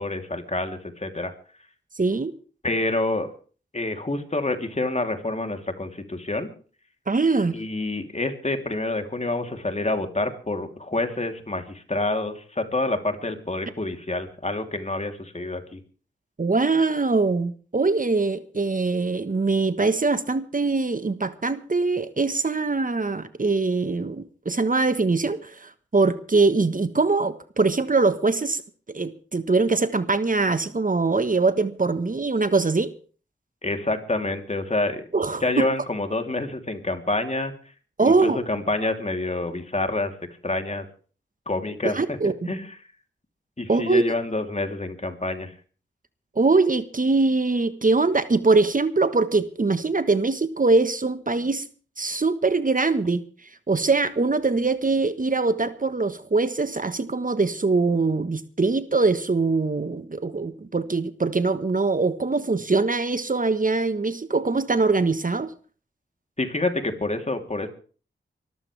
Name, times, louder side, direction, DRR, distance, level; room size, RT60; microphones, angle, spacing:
voice 1, 0.0-1.3 2.6-3.3 3.7-6.5 7.5-15.8 33.6-35.1 35.4-37.5 38.0-40.1 40.4-40.8 41.4-42.7 43.6-45.5 66.4-67.7, left 2 dB, 35° left, 5 dB, 3.3 m, -27 dB
voice 2, 1.9-2.3 7.1-7.6 16.4-28.6 28.9-32.9 35.1-35.6 38.0-38.4 41.8-42.5 43.7-44.0 46.3-51.6 52.0-53.2 53.7-65.5, right 3 dB, 45° right, 12 dB, 1.4 m, -22 dB
24.0 x 14.0 x 3.5 m, 0.40 s
cardioid pair, 45°, 20 cm